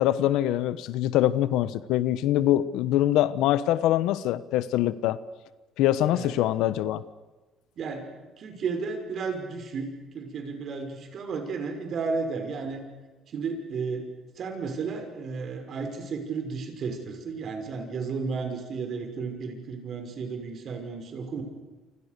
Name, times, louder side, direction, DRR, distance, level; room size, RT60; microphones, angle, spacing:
voice 1, 0.0-5.2 5.8-7.0, left 13 dB, 85° left, 1.1 m, -24 dB
voice 2, 7.8-8.1 8.4-12.8 13.3-14.1 14.4-21.4, right 4 dB, 55° right, 5.9 m, -33 dB
28.5 x 26.0 x 6.9 m
cardioid pair, 90°, 0 cm